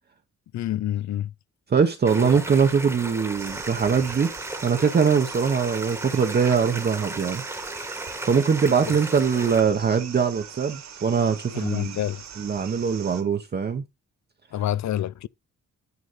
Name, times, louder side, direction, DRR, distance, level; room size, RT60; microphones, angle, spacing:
voice 1, 0.5-1.3 2.2-2.3 8.8-8.9 11.5-12.2 14.5-15.3, left 12 dB, 65° left, 0.5 m, -28 dB
voice 2, 1.7-4.3 4.6-7.4 7.8-7.9 8.2-12.0 12.4-13.8, right 6 dB, 35° right, 0.9 m, -22 dB
sound 1, 2.1-9.6, right 2 dB, 10° right, 1.3 m, -35 dB
sound 2, 3.4-13.2, right 8 dB, 60° right, 1.8 m, -42 dB
9.6 x 5.0 x 4.1 m
wide cardioid pair, 170°, 30 cm